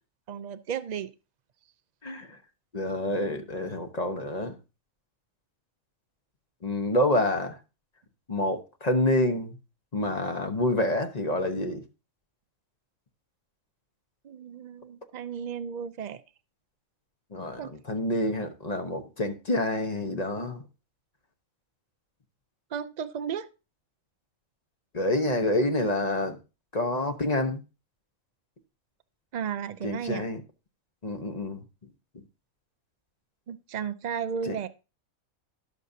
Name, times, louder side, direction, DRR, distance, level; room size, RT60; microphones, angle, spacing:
voice 1, 0.3-1.1 14.2-16.2 17.6-17.7 22.7-23.5 29.3-30.2 33.5-34.7, right 7 dB, 65° right, 0.4 m, -34 dB
voice 2, 2.0-2.4 2.7-4.6 6.6-7.6 8.3-9.5 9.9-11.8 17.3-20.6 24.9-26.4 26.7-27.6 29.8-30.4 31.0-31.6 34.4-34.6, left 1 dB, 30° left, 1.0 m, -27 dB
17.5 x 6.6 x 2.7 m
omnidirectional pair, 1.5 m